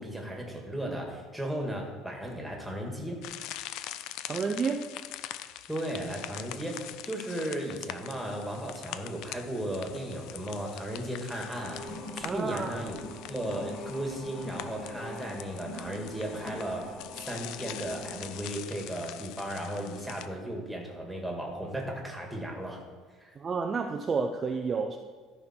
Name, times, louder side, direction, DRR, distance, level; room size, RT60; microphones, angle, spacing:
voice 1, 0.0-3.2 5.7-13.0 13.3-16.9 17.3-22.8 23.2-23.3, right 1 dB, 5° right, 0 dB, 2.0 m, -35 dB
sound 1, 3.2-20.3, left 13 dB, 70° left, 0.5 m, -44 dB
voice 2, 4.3-4.9 12.2-12.9 23.4-25.0, right 5 dB, 30° right, 4 dB, 0.6 m, -30 dB
sound 2, 11.5-18.5, left 1 dB, 50° left, 2.3 m, -43 dB
13.5 x 5.7 x 4.5 m, 1.5 s
cardioid pair, 135°, 0 cm